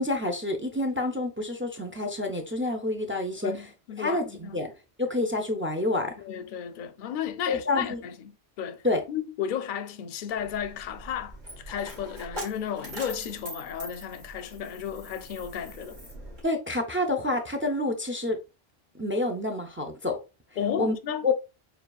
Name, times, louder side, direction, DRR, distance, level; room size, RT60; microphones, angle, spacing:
voice 1, 0.0-3.5 4.0-4.7 5.0-6.1 7.5-8.0 8.8-9.0 16.4-18.4 18.9-20.2 20.8-20.9 21.2-21.3, left 2 dB, 20° right, 0.3 m, -28 dB
voice 2, 3.4-4.6 6.2-8.3 8.6-8.8 9.1-16.0 20.6-21.3, left 8 dB, 60° left, 0.6 m, -33 dB
Coin (dropping), 10.3-16.4, equal, 50° right, 1.7 m, -42 dB
6.8 x 2.3 x 2.3 m
omnidirectional pair, 1.0 m